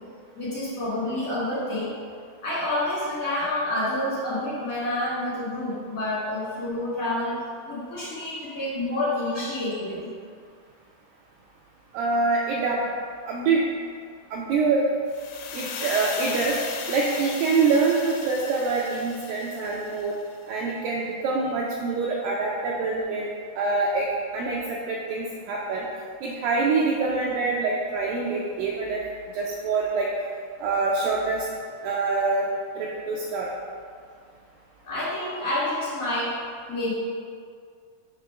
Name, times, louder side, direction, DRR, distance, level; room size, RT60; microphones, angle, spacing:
voice 1, 0.4-1.9 2.4-7.3 7.7-10.1 34.8-36.3 36.7-36.9, left 1 dB, 65° left, -10 dB, 0.8 m, -28 dB
voice 2, 11.9-12.9 13.3-13.6 14.3-14.8 15.5-16.6 16.9-20.1 20.5-23.3 23.6-24.1 24.3-25.9 26.2-29.0 29.3-30.1 30.6-31.5 31.8-32.5 32.8-33.5, right 4 dB, 90° right, -3 dB, 1.9 m, -25 dB
sound 1, 15.1-20.2, left 6 dB, 80° left, 2.2 m, -36 dB
6.5 x 3.0 x 5.7 m, 2.2 s
omnidirectional pair, 4.5 m